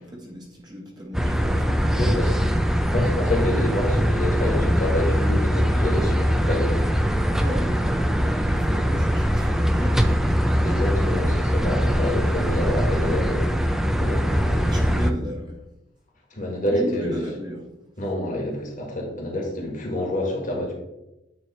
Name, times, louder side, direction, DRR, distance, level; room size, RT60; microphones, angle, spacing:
voice 1, 0.0-2.1 6.9-10.6 11.6-11.8 14.7-15.6 16.7-17.6, equal, 25° right, -2 dB, 1.2 m, -35 dB
sound 1, 1.1-15.1, equal, 5° right, 0.4 m, -22 dB
voice 2, 1.9-2.3 2.9-7.0 10.6-14.9 16.3-17.2 18.0-20.8, left 1 dB, 45° left, 0 dB, 1.7 m, -28 dB
9.0 x 3.3 x 4.2 m, 0.94 s
head